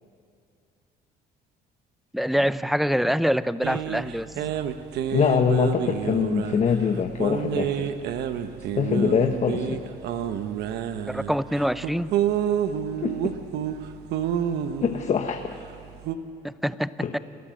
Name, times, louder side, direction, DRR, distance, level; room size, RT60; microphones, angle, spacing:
voice 1, 2.1-4.5 11.1-12.1 16.4-16.9, equal, ahead, 15 dB, 0.5 m, -25 dB
sound 1, 3.6-16.2, right 9 dB, 75° right, 1.1 m, -29 dB
voice 2, 5.1-7.9 8.7-9.8 13.0-13.3 14.8-15.4 17.0-17.2, left 7 dB, 45° left, 5 dB, 1.1 m, -24 dB
29.5 x 14.0 x 7.7 m, 2.4 s
cardioid pair, 110°, 17 cm